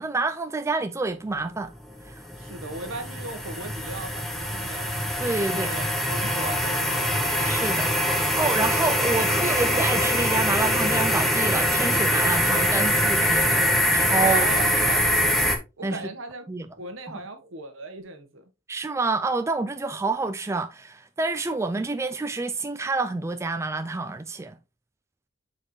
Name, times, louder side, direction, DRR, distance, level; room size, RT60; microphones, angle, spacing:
voice 1, 0.0-1.7 2.0-2.3 5.2-5.7 7.4-13.6 13.9-14.5 15.8-16.1 16.5-16.7 17.1-17.2 18.7-24.6, right 3 dB, 15° right, 0.3 m, -28 dB
sound 1, 1.7-15.6, equal, ahead, 1.1 m, -23 dB
voice 2, 2.4-5.0 5.5-7.5 14.2-15.2 15.8-16.4 16.8-18.4, right 2 dB, 70° right, 1.2 m, -37 dB
7.3 x 4.3 x 3.1 m
head